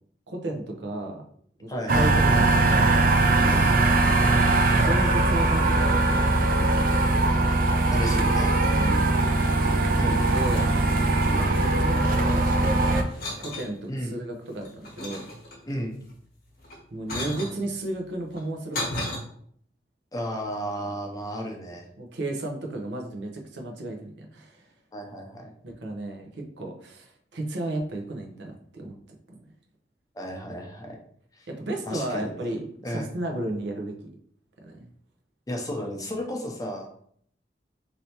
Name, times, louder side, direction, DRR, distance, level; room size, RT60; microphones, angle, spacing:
voice 1, 0.3-1.2 1.6-3.0 4.3-4.4 4.8-7.1 8.8-9.1 10.3-10.7 11.2-13.1 13.4-15.3 16.9-19.2 22.0-24.7 25.6-28.9 31.5-33.9 34.6-34.9, right 1 dB, 85° right, 2 dB, 0.7 m, -33 dB
voice 2, 1.7-2.1 3.4-3.7 7.9-8.6 10.0-10.2 13.9-14.2 15.7-16.0 20.1-21.9 24.9-25.5 30.1-31.0 31.3-31.5 31.9-32.3 32.8-33.1 35.5-36.9, equal, 20° left, 1 dB, 0.5 m, -33 dB
sound 1, 1.9-13.0, right 2 dB, 50° right, 0.4 m, -21 dB
sound 2, 10.0-10.9 11.2-12.6 13.1-13.7 14.3-15.8 16.6-17.6 18.3-19.2, left 1 dB, 55° left, 0.9 m, -35 dB
3.2 x 2.8 x 2.8 m, 0.63 s
head